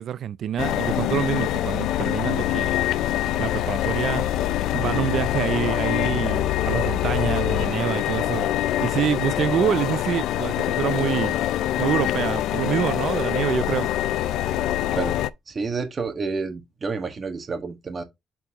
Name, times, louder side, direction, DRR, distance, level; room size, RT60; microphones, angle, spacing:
voice 1, 0.0-2.8 3.4-4.2 4.7-8.5 8.8-11.3 11.8-13.9, right 10 dB, 65° right, 0.4 m, -26 dB
sound 1, 0.6-15.3, left 13 dB, 85° left, 0.4 m, -24 dB
voice 2, 15.5-18.0, right 4 dB, 35° right, 1.7 m, -29 dB
8.1 x 4.5 x 2.9 m
cardioid pair, 90°, 0 cm